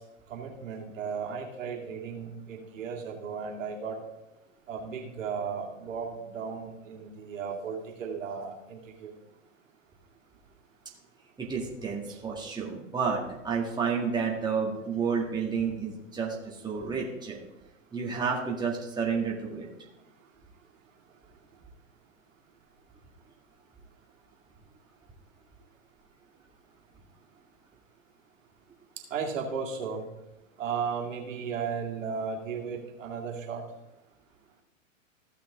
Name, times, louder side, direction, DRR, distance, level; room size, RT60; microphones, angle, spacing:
voice 1, 0.3-4.0 4.7-9.1 12.1-12.2 29.1-30.0 30.6-33.6, right 6 dB, 70° right, -1 dB, 2.4 m, -35 dB
voice 2, 11.4-17.4 17.9-19.7, right 5 dB, 10° right, -3 dB, 2.0 m, -30 dB
15.0 x 5.8 x 3.7 m, 0.93 s
hypercardioid pair, 120°, 40 cm